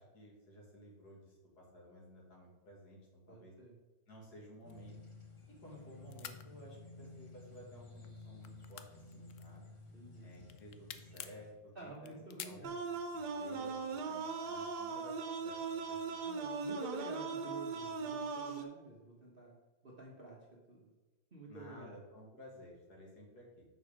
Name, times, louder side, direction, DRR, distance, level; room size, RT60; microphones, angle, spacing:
voice 1, 0.0-3.6 4.1-5.0 5.5-9.6 10.2-12.2 12.4-12.6 13.1-15.6 15.9-16.2 21.5-23.7, equal, 55° left, -2 dB, 2.4 m, -55 dB
voice 2, 3.3-3.7 9.9-10.3 11.7-12.7 16.2-19.6 19.8-20.9 21.3-22.0, right 2 dB, 35° right, -3 dB, 1.1 m, -50 dB
sound 1, 4.6-5.8 6.1-6.4 7.2-7.7 8.0-9.9 10.3-11.4 12.0-13.1, left 10 dB, 85° left, 0.6 m, -49 dB
sound 2, 4.6-11.5, left 3 dB, 25° left, 0.7 m, -54 dB
sound 3, 12.6-18.6, right 4 dB, 65° right, 1.4 m, -39 dB
6.9 x 5.3 x 5.0 m, 1.2 s
omnidirectional pair, 2.0 m